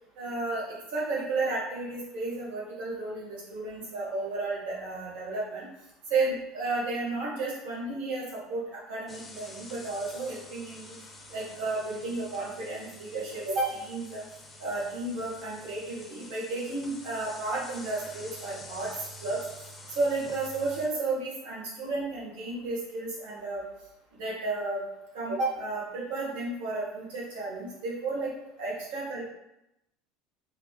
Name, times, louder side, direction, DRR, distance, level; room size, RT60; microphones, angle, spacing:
voice 1, 0.2-0.6 0.9-5.7 6.1-10.9 11.3-14.2 14.6-18.9 19.2-19.4 19.9-23.6 24.1-24.8 25.1-28.3 28.6-29.3, right 3 dB, 90° right, -5 dB, 1.5 m, -32 dB
sound 1, 9.1-20.9, left 1 dB, 15° left, 0.6 m, -47 dB
4.8 x 2.0 x 3.7 m, 0.87 s
cardioid pair, 145°, 0 cm